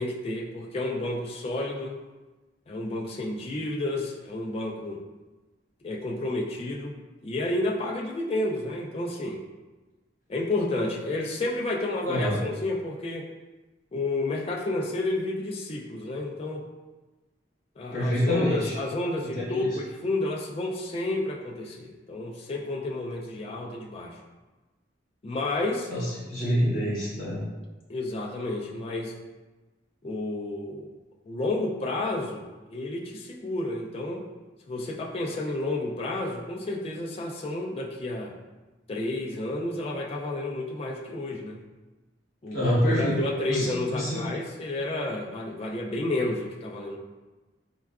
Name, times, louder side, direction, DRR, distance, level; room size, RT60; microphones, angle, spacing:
voice 1, 0.0-2.0 2.7-5.0 5.8-7.0 7.2-9.4 10.3-13.3 13.9-16.7 17.8-24.2 25.2-25.9 27.9-29.1 30.0-30.9 31.3-34.2 34.7-38.3 38.9-41.6 42.4-47.0, left 2 dB, 30° left, -2 dB, 0.3 m, -31 dB
voice 2, 17.9-18.7 19.3-19.7 25.9-27.4 42.5-43.1 43.5-44.3, equal, 50° left, -7 dB, 1.2 m, -26 dB
3.7 x 2.2 x 2.3 m, 1.2 s
head